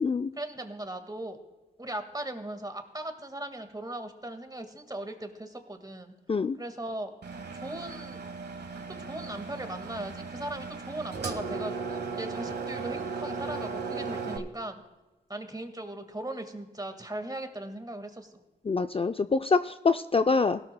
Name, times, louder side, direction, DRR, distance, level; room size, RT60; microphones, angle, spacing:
voice 1, 0.4-1.4 1.8-6.1 6.6-7.1 7.5-8.2 8.9-14.8 15.3-18.4, right 1 dB, 20° right, 7 dB, 1.7 m, -38 dB
Engine, 7.2-14.4, right 4 dB, 70° right, 1.2 m, -36 dB
voice 2, 18.7-20.6, left 4 dB, 30° left, 9 dB, 0.4 m, -25 dB
16.5 x 13.0 x 2.2 m, 1.1 s
cardioid pair, 50°, 18 cm